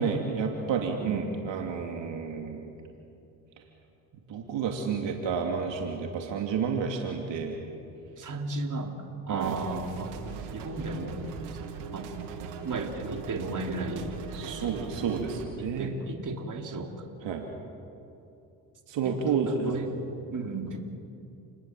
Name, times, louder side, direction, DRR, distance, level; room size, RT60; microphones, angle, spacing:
voice 1, 0.0-2.6 4.3-7.6 9.3-9.5 14.3-15.9 17.2-17.5 18.9-19.7, right 6 dB, 60° right, 2 dB, 2.7 m, -30 dB
voice 2, 1.0-1.3 8.2-9.0 9.3-10.1 10.5-11.2 11.5-11.6 11.9-12.1 12.6-14.9 15.6-17.1 19.0-20.0 20.3-20.8, right 3 dB, 40° right, 3 dB, 3.6 m, -35 dB
sound 1, 9.4-15.5, right 5 dB, 90° right, 2.7 m, -39 dB
29.5 x 21.0 x 7.6 m, 2.8 s
supercardioid pair, 75°, 49 cm